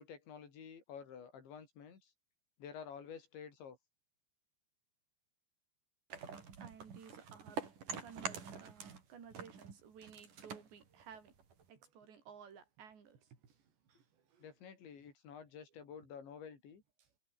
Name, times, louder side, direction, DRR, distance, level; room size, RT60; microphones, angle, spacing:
voice 1, 0.0-2.1 2.6-3.8 14.4-16.8, left 7 dB, 80° left, 6.8 m, -51 dB
sound 1, 6.1-9.1 9.3-11.7, right 6 dB, 50° right, 5.3 m, -46 dB
voice 2, 6.6-7.7 8.0-11.3 11.7-14.5 15.0-15.1 17.0-17.1, right 7 dB, 75° right, 6.7 m, -56 dB
omnidirectional pair, 5.1 m